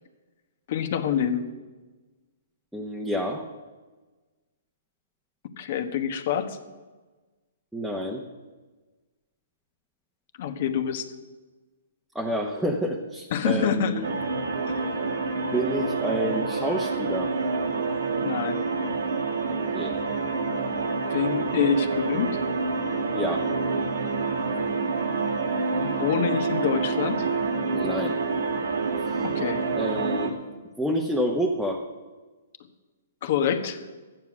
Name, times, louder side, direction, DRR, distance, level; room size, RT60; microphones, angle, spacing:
voice 1, 0.7-1.5 5.6-6.6 10.4-11.1 13.3-14.0 14.7-14.9 18.2-18.6 21.1-22.3 25.8-27.3 29.2-29.6 33.2-33.8, left 8 dB, 55° left, 7 dB, 1.2 m, -26 dB
voice 2, 2.7-3.5 7.7-8.2 12.1-14.1 15.5-17.3 19.7-20.0 23.1-23.5 27.7-28.2 29.8-30.3 30.8-31.9, equal, ahead, -2 dB, 1.0 m, -28 dB
sound 1, 14.0-30.3, right 4 dB, 80° right, 1.8 m, -27 dB
12.0 x 9.4 x 6.1 m, 1.3 s
hypercardioid pair, 140°, 0 cm